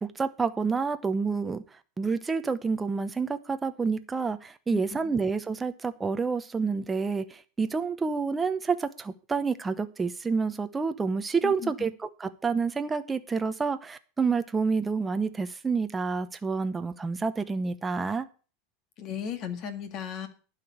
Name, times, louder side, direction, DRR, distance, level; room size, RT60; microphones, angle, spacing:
voice 1, 0.0-1.6 2.0-18.3, right 4 dB, 15° right, 10 dB, 0.8 m, -28 dB
voice 2, 19.0-20.3, left 7 dB, 40° left, 9 dB, 1.9 m, -35 dB
11.5 x 5.0 x 8.6 m, 0.37 s
supercardioid pair, 145°, 0 cm